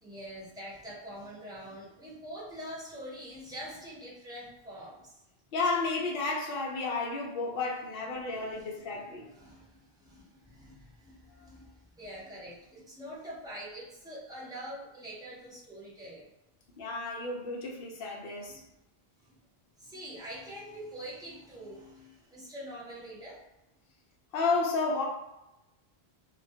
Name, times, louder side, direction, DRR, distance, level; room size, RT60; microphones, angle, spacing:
voice 1, 0.0-5.2 8.6-8.7 9.2-16.3 18.5-18.6 19.8-23.4, equal, 5° right, -7 dB, 0.5 m, -45 dB
voice 2, 5.5-9.3 11.3-11.5 16.8-18.6 24.3-25.1, left 3 dB, 65° left, -2 dB, 0.8 m, -32 dB
2.3 x 2.1 x 2.7 m, 0.91 s
omnidirectional pair, 1.1 m